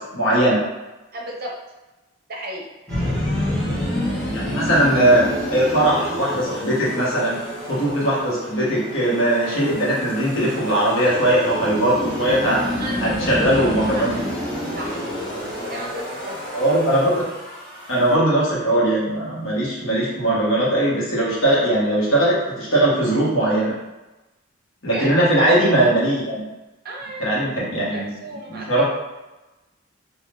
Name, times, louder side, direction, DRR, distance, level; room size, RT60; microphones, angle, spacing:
voice 1, 0.1-0.6 4.3-5.2 5.5-7.4 7.7-12.6 13.0-14.1 16.5-17.2 17.9-23.7 24.8-26.4 27.2-28.1 28.5-28.9, right 1 dB, 65° left, -7 dB, 1.1 m, -19 dB
voice 2, 1.1-1.5 2.3-3.2 12.8-13.5 14.0-14.2 14.8-15.0 15.7-16.4 24.9-25.3 26.8-28.9, right 1 dB, 50° right, -1 dB, 0.6 m, -34 dB
sound 1, 2.9-18.1, left 1 dB, ahead, 1.0 m, -29 dB
3.5 x 2.4 x 2.5 m, 1.1 s
head